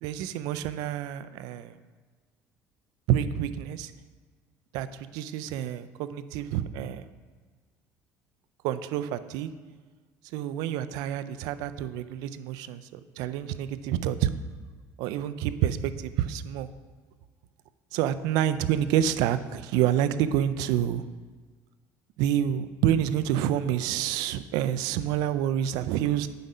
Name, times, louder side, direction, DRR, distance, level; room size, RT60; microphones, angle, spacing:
voice 1, 0.0-1.8 3.1-3.9 4.7-7.1 8.6-9.5 10.3-14.3 15.0-16.7 17.9-21.0 22.2-26.3, right 10 dB, 80° right, 13 dB, 0.4 m, -28 dB
7.8 x 5.0 x 5.5 m, 1.4 s
cardioid pair, 125°, 6 cm